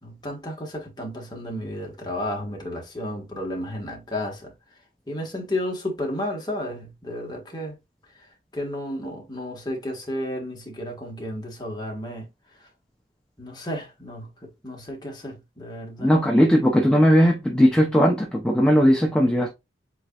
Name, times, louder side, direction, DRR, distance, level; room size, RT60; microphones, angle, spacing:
voice 1, 0.0-4.5 5.1-7.8 8.5-12.3 13.4-16.2, left 1 dB, 20° left, 1.4 m, -32 dB
voice 2, 16.0-19.5, equal, 5° left, 0.5 m, -18 dB
7.6 x 2.9 x 2.3 m
head